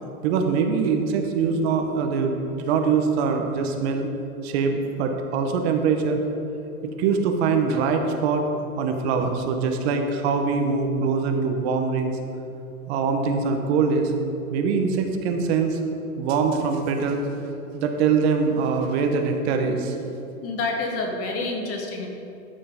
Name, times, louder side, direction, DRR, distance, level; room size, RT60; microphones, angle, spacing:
voice 1, 0.2-4.1 4.4-6.3 6.8-8.5 8.8-12.2 12.9-14.1 14.5-15.8 16.2-17.2 17.7-20.0, right 5 dB, 45° right, 4 dB, 1.0 m, -23 dB
voice 2, 20.4-22.1, left 3 dB, 30° left, 1 dB, 1.7 m, -28 dB
12.5 x 5.7 x 5.2 m, 2.7 s
hypercardioid pair, 135°, 45 cm